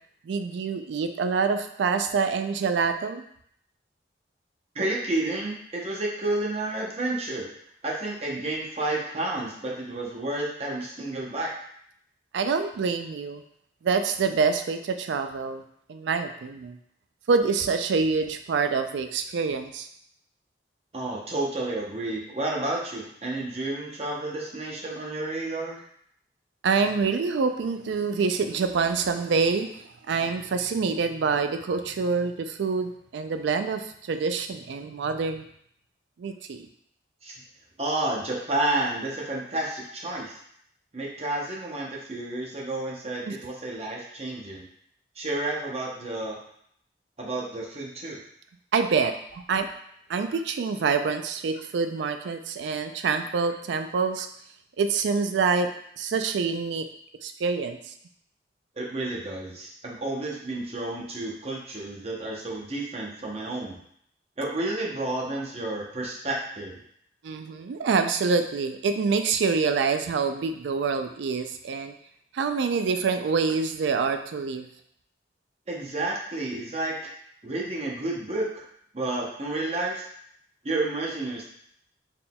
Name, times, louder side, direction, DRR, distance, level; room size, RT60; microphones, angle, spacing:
voice 1, 0.3-3.2 12.3-13.4 13.8-15.6 15.9-16.8 17.3-19.9 26.6-35.4 36.2-36.7 43.3-43.4 48.7-49.7 50.1-54.3 54.8-55.7 56.0-56.9 57.2-57.9 67.2-71.9 72.3-74.7, right 5 dB, 75° right, 8 dB, 0.3 m, -26 dB
voice 2, 4.7-7.5 7.8-11.5 20.9-25.8 37.2-37.4 37.8-40.4 40.9-44.7 45.2-46.4 47.2-48.2 58.8-63.8 64.4-66.8 75.7-76.9 77.4-78.6 78.9-80.1 80.6-81.4, right 2 dB, 35° right, -2 dB, 0.7 m, -30 dB
4.1 x 3.7 x 2.2 m, 0.68 s
head